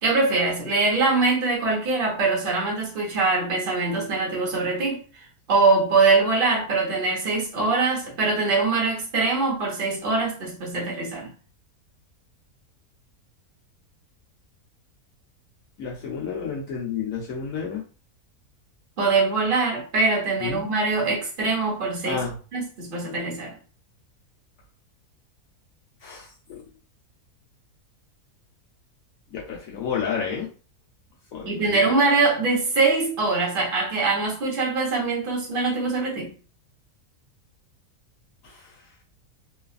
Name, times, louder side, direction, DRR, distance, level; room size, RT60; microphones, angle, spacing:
voice 1, 0.0-5.0 5.5-11.3 19.0-22.2 22.5-23.6 31.4-36.3, right 3 dB, 40° right, 1.0 m, -23 dB
voice 2, 15.8-17.8 20.4-20.6 22.1-22.4 26.0-26.6 29.3-30.5 31.3-31.9 38.4-38.8, left 6 dB, 70° left, 1.0 m, -31 dB
3.1 x 2.4 x 2.4 m
omnidirectional pair, 1.6 m